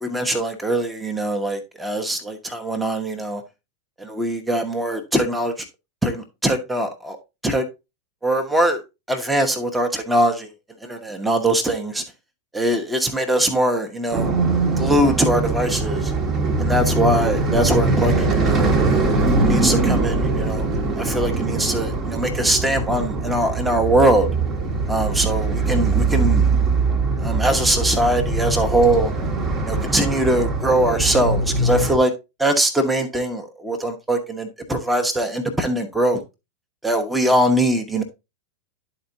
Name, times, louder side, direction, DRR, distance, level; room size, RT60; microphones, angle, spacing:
voice 1, 0.0-3.4 4.0-5.6 6.0-7.2 7.4-7.6 8.2-8.8 9.1-10.5 10.8-12.0 12.5-14.4 14.8-16.1 16.6-19.1 19.4-24.3 24.9-26.5 27.2-29.1 29.7-32.1 32.4-36.2 36.8-38.0, right 1 dB, 5° right, 0.9 m, -22 dB
sound 1, 14.1-32.0, right 3 dB, 30° right, 1.1 m, -22 dB
11.5 x 4.3 x 2.7 m
figure-of-eight pair, 90°, 0 cm